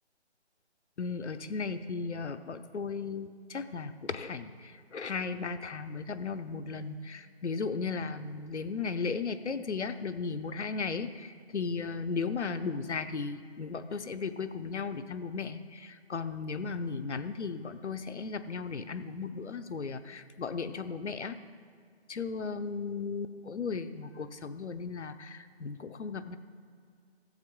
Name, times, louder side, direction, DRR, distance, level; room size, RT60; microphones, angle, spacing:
voice 1, 1.0-21.4 22.1-26.4, left 5 dB, 80° left, 11 dB, 0.8 m, -36 dB
15.5 x 8.0 x 3.7 m, 2.1 s
figure-of-eight pair, 175°, 34 cm